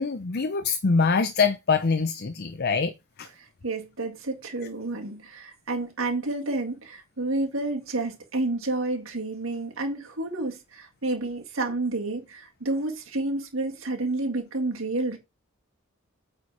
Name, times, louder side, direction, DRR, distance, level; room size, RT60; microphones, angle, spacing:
voice 1, 0.0-2.9 3.2-3.3, left 4 dB, 50° left, 0.7 m, -24 dB
voice 2, 3.4-15.2, right 2 dB, 70° right, 1.9 m, -30 dB
9.0 x 4.4 x 4.8 m
head